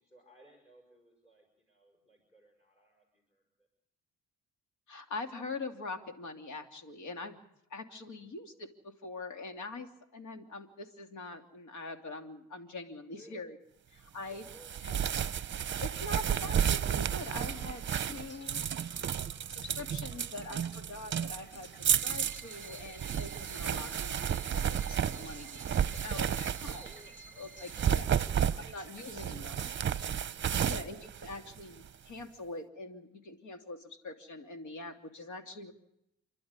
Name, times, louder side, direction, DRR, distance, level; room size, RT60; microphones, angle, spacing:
voice 1, 0.0-3.7 13.1-13.5 14.3-14.9 26.7-30.1, right 1 dB, 20° left, 2 dB, 5.7 m, -62 dB
voice 2, 4.9-7.4 7.7-13.6 13.9-14.4 14.8-15.0 15.6-19.0 19.5-26.9 27.4-28.1 28.6-29.7 30.7-35.7, left 3 dB, 80° left, 5 dB, 3.0 m, -44 dB
sound 1, 14.4-27.1 27.6-31.9, right 9 dB, 40° right, 0.7 m, -32 dB
sound 2, 17.3-31.4, left 1 dB, 40° left, 3.8 m, -58 dB
sound 3, 21.8-28.0, right 2 dB, 5° right, 1.3 m, -54 dB
29.5 x 11.5 x 9.7 m, 0.83 s
cardioid pair, 90°, 30 cm